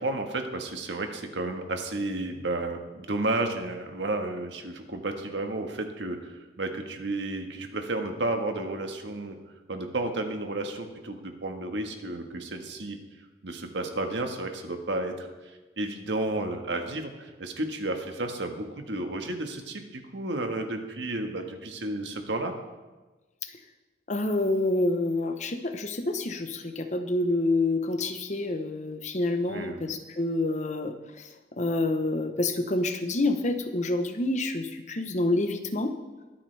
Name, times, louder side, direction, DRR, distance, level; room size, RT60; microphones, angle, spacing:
voice 1, 0.0-9.4 9.7-13.0 13.4-15.3 15.8-22.6 29.5-29.8, right 2 dB, 85° right, 4 dB, 1.5 m, -32 dB
voice 2, 24.1-31.3 31.6-35.9, left 2 dB, 40° left, 7 dB, 0.9 m, -28 dB
22.5 x 8.7 x 3.4 m, 1.2 s
head